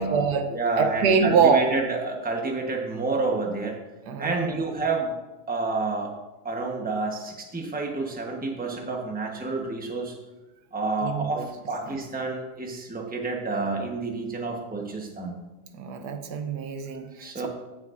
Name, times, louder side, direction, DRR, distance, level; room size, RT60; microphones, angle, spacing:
voice 1, 0.0-1.7 4.1-4.6 11.0-11.5 11.9-12.0 15.7-17.5, right 5 dB, 85° right, 7 dB, 1.4 m, -25 dB
voice 2, 0.5-3.8 4.2-5.1 5.5-6.1 6.4-10.1 10.7-15.4 17.2-17.5, right 3 dB, 5° right, 1 dB, 0.9 m, -29 dB
15.5 x 6.2 x 2.6 m, 1.1 s
omnidirectional pair, 1.7 m